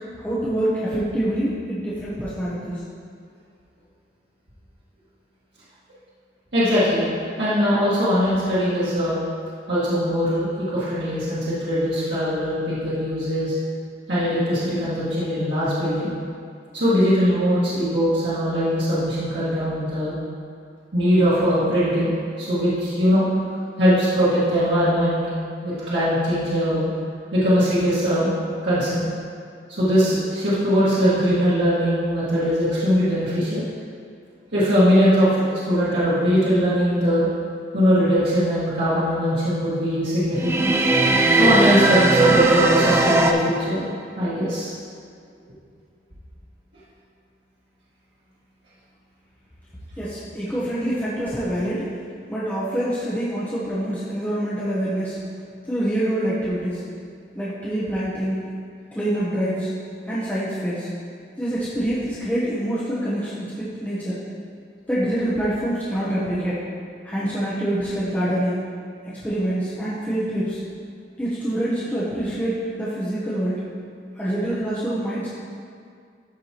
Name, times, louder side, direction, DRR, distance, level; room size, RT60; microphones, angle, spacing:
voice 1, 0.2-2.8 50.0-51.8 52.3-55.2 55.6-56.8 57.3-58.5 58.9-59.7 60.1-60.9 61.4-64.2 64.9-66.6 67.0-68.7 69.0-70.6 71.2-73.6 74.2-75.3, right 1 dB, 10° left, -10 dB, 1.0 m, -25 dB
voice 2, 6.5-7.0 7.4-9.2 9.7-13.5 14.1-16.1 16.7-20.1 20.9-22.1 22.4-23.2 23.8-25.2 25.6-26.9 27.3-28.3 28.6-29.1 29.7-33.6 34.5-37.3 37.7-40.7 41.3-43.8 44.2-44.7, equal, 90° right, -12 dB, 1.8 m, -21 dB
sound 1, 40.4-43.3, right 2 dB, 15° right, 0.3 m, -18 dB
13.0 x 4.7 x 3.0 m, 2.3 s
head